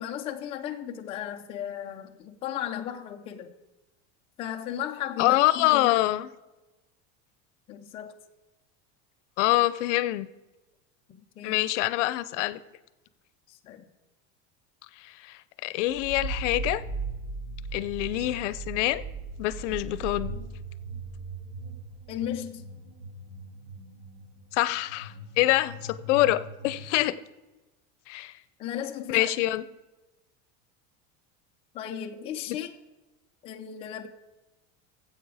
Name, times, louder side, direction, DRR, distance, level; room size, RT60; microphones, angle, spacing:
voice 1, 0.0-3.5 4.4-6.0 7.7-8.1 11.1-11.6 13.5-13.9 22.1-22.6 28.6-29.3 31.7-32.7 33.4-34.1, left 10 dB, 15° left, 2 dB, 0.4 m, -35 dB
voice 2, 5.2-6.3 9.4-10.3 11.4-12.6 15.0-16.8 17.7-19.0 19.4-20.4 24.5-27.2 28.1-28.3 29.1-29.6, left 16 dB, 75° left, 15 dB, 0.6 m, -25 dB
sound 1, 15.9-26.9, right 3 dB, 70° right, 2.2 m, -38 dB
16.5 x 7.8 x 4.8 m, 1.1 s
cardioid pair, 180°, 36 cm